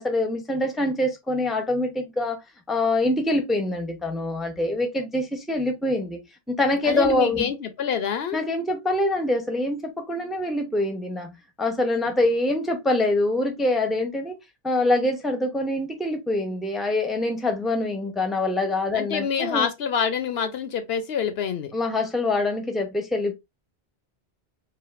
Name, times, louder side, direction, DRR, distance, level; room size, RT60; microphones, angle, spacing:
voice 1, 0.0-2.4 2.7-6.2 6.5-7.5 8.3-11.3 11.6-14.4 14.6-19.7 21.7-23.3, left 2 dB, ahead, 0.7 m, -25 dB
voice 2, 6.8-8.4 18.9-21.7, left 7 dB, 75° left, 0.9 m, -26 dB
5.0 x 2.6 x 2.5 m
omnidirectional pair, 1.1 m